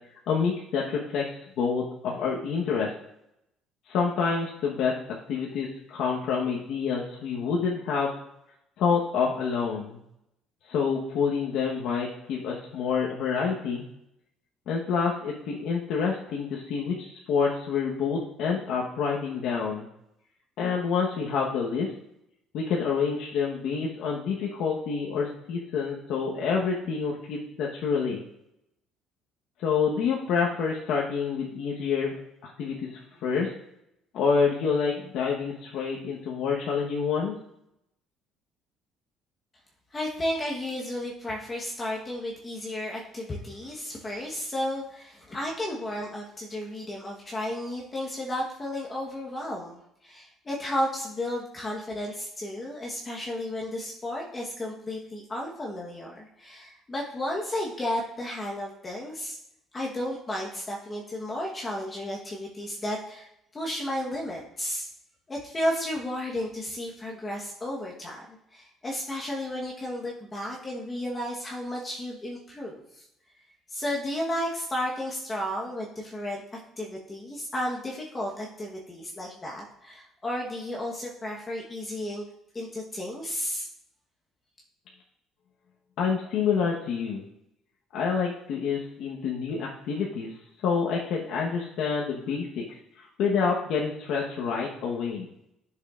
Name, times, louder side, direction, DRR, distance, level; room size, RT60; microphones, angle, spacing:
voice 1, 0.3-2.9 3.9-4.9 5.3-8.2 8.8-10.0 10.7-13.8 14.7-19.9 20.6-21.9 22.5-28.2 29.6-32.1 32.4-33.5 34.1-37.3 86.0-87.2 87.9-90.4 90.6-95.3, left 5 dB, 65° left, -3 dB, 1.1 m, -27 dB
voice 2, 39.9-49.8 50.0-59.4 59.7-64.9 65.3-73.0 73.7-76.4 76.8-82.2 82.5-83.7, left 1 dB, 20° left, -3 dB, 1.1 m, -33 dB
11.5 x 6.4 x 2.5 m, 0.80 s
cardioid pair, 140°, 0 cm